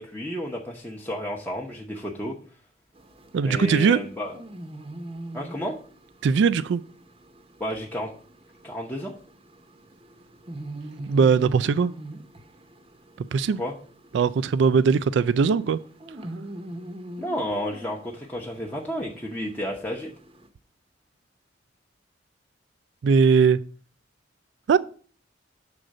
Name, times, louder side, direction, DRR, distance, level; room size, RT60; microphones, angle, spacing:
voice 1, 0.0-2.3 3.4-4.4 5.3-5.8 7.6-8.1 8.6-9.1 13.6-13.7 17.2-20.1, equal, 10° left, 0.8 m, -31 dB
sound 1, 2.9-20.5, right 1 dB, 30° right, 0.8 m, -43 dB
voice 2, 3.3-4.0 6.2-6.8 11.1-11.9 13.3-13.6 14.1-15.8 23.0-23.6 24.7-24.8, right 5 dB, 65° right, 0.3 m, -20 dB
7.7 x 3.8 x 6.3 m
head